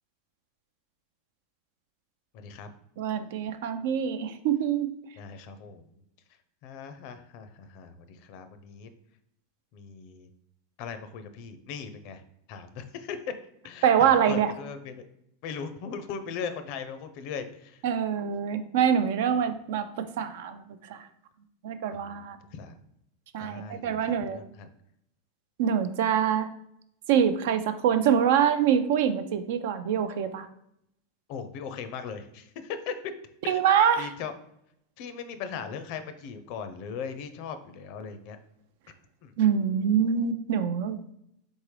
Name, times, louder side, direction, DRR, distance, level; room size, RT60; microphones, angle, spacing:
voice 1, 2.3-2.7 5.2-6.0 6.6-8.9 9.7-10.3 10.8-12.2 12.5-13.2 13.6-15.1 15.4-17.8 21.9-22.0 22.5-22.8 23.4-24.7 31.3-33.1 33.4-33.6 34.0-34.3 35.0-38.4 39.2-39.3, left 6 dB, 60° left, 10 dB, 0.5 m, -39 dB
voice 2, 3.0-4.9 13.8-14.5 17.8-20.6 20.9-21.1 21.6-22.4 23.3-24.4 25.6-26.5 27.1-30.5 33.5-34.1 39.4-41.0, right 8 dB, 70° right, 11 dB, 0.4 m, -25 dB
3.9 x 3.6 x 3.1 m, 0.76 s
hypercardioid pair, 105°, 0 cm